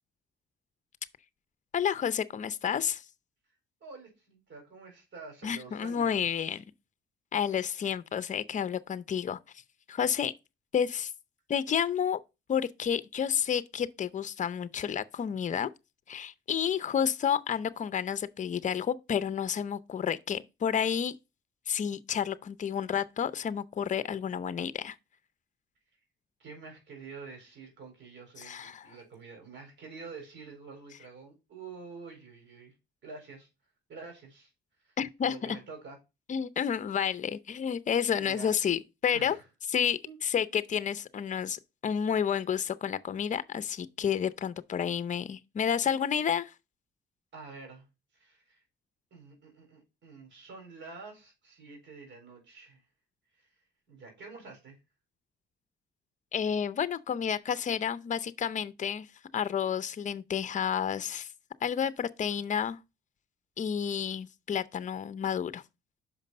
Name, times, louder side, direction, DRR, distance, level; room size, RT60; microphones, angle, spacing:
voice 1, 1.7-3.0 5.4-6.6 7.3-9.4 9.9-10.3 10.7-11.1 11.5-12.2 12.5-15.7 16.1-21.2 21.7-25.0 28.4-28.9 35.0-35.6 36.3-39.4 39.7-46.5 56.3-59.1 59.3-61.3 61.6-62.8 63.6-65.6, left 8 dB, 40° left, 0.6 m, -30 dB
voice 2, 3.8-6.6 26.4-32.7 33.0-33.5 33.9-34.5 34.8-34.9 35.2-36.0 38.1-38.5 39.1-39.4 40.0-40.2 47.3-47.9 48.1-48.6 49.1-52.8 53.4-53.5 53.9-54.8, right 4 dB, 65° right, 4.1 m, -48 dB
6.0 x 5.2 x 5.5 m
cardioid pair, 90°, 20 cm